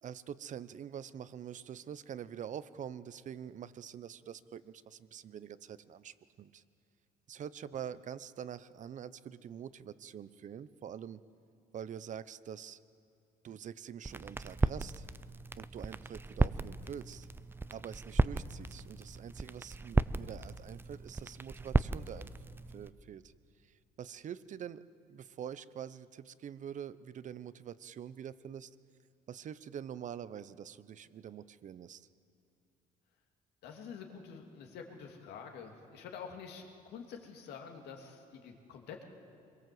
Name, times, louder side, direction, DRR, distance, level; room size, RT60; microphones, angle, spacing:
voice 1, 0.0-6.6 7.3-11.2 11.7-12.8 13.4-15.1 15.6-17.3 17.7-23.3 23.6-24.8 25.1-28.8 29.3-32.1, right 9 dB, 45° right, 15 dB, 0.8 m, -45 dB
sound 1, 14.0-22.9, right 3 dB, 15° right, 0.5 m, -35 dB
voice 2, 33.6-39.0, left 6 dB, 75° left, 2 dB, 2.8 m, -47 dB
25.0 x 22.5 x 7.9 m, 2.5 s
cardioid pair, 110°, 17 cm